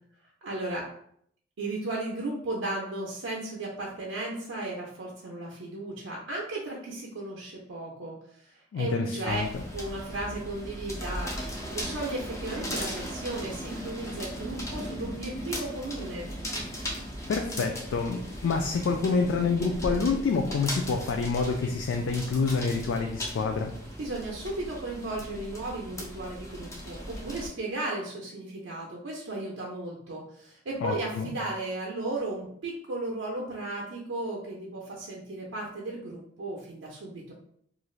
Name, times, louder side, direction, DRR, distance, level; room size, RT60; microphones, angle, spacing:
voice 1, 0.4-0.9 1.6-9.4 9.7-11.3 11.7-16.3 24.0-37.3, right 2 dB, 85° right, -3 dB, 0.5 m, -35 dB
voice 2, 8.7-9.6 17.3-23.7 30.8-31.3, left 4 dB, 75° left, 3 dB, 0.3 m, -27 dB
sound 1, 9.3-27.5, equal, 15° left, 0.5 m, -37 dB
3.1 x 2.5 x 2.3 m, 0.67 s
head